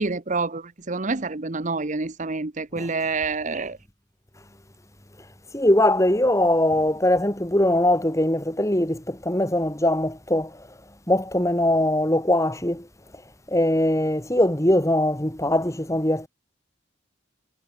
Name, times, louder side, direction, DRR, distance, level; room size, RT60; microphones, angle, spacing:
voice 1, 0.0-3.8, right 3 dB, 40° right, 1.0 m, -27 dB
voice 2, 5.5-10.6 11.1-12.9 13.5-16.3, left 1 dB, 15° left, 3.2 m, -21 dB
head